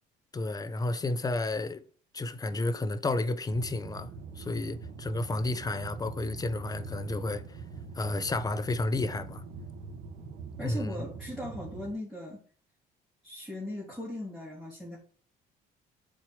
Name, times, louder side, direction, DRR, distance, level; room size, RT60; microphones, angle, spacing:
voice 1, 0.3-1.8 2.1-4.1 4.4-7.6 8.0-9.4 10.6-11.0, left 2 dB, 20° left, 0.8 m, -31 dB
sound 1, 3.5-11.9, right 4 dB, 80° right, 2.1 m, -43 dB
voice 2, 10.6-12.4 13.2-15.0, left 1 dB, ahead, 3.5 m, -38 dB
7.4 x 4.6 x 4.9 m
cardioid pair, 110°, 17 cm